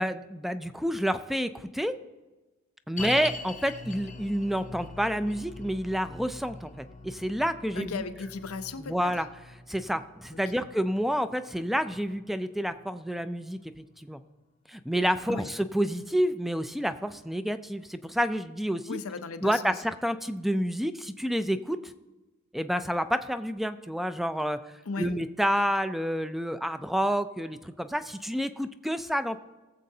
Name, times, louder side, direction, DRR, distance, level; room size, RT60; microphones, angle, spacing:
voice 1, 0.0-1.9 2.9-8.0 8.9-9.3 9.7-14.2 14.7-19.0 19.4-21.9 22.5-24.6 25.0-29.4, equal, ahead, 11 dB, 0.4 m, -29 dB
sound 1, 3.0-14.3 14.5-14.6 15.3-15.4, left 3 dB, 35° left, 0.6 m, -44 dB
voice 2, 7.8-9.2 10.3-10.7 15.3-15.5 18.9-19.7 24.9-25.1, left 4 dB, 90° left, 10 dB, 0.6 m, -37 dB
19.0 x 7.5 x 2.7 m, 1.1 s
head